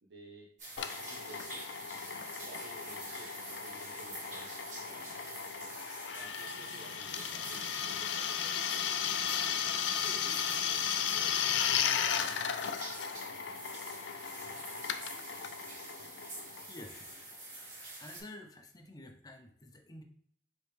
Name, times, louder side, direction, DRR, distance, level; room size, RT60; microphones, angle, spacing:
voice 1, 0.0-0.6 1.1-1.7 2.4-5.3 6.1-9.1 9.6-12.5, right 2 dB, 80° right, -2 dB, 0.7 m, -55 dB
sound 1, 0.6-18.2, right 2 dB, 45° right, 1.9 m, -46 dB
Drill, 0.8-17.1, left 8 dB, 80° left, 0.4 m, -35 dB
voice 2, 16.3-17.2 18.0-20.0, left 1 dB, 20° left, 3 dB, 0.6 m, -50 dB
4.8 x 3.1 x 3.3 m, 0.63 s
head